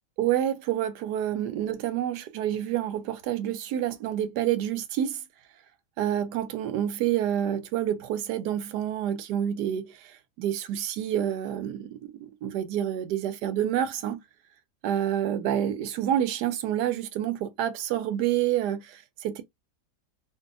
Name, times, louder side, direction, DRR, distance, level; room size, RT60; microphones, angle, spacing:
voice 1, 0.2-5.2 6.0-14.2 14.8-19.4, right 11 dB, 80° right, 1.1 m, -28 dB
2.6 x 2.6 x 2.4 m
omnidirectional pair, 1.8 m